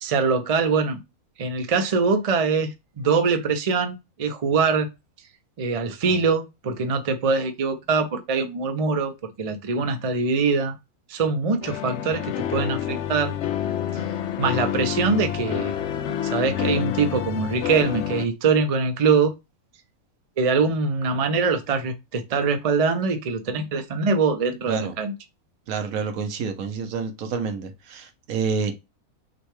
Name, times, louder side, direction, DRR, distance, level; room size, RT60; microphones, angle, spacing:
voice 1, 0.0-1.0 1.4-4.9 5.6-9.1 9.4-10.8 11.1-13.4 14.4-15.7 16.2-19.3 20.4-25.2, right 4 dB, 45° right, 0.4 m, -23 dB
sound 1, 11.6-18.3, left 10 dB, 65° left, 0.7 m, -28 dB
voice 2, 25.7-28.7, right 5 dB, 75° right, 1.2 m, -28 dB
6.2 x 2.3 x 3.2 m
omnidirectional pair, 1.5 m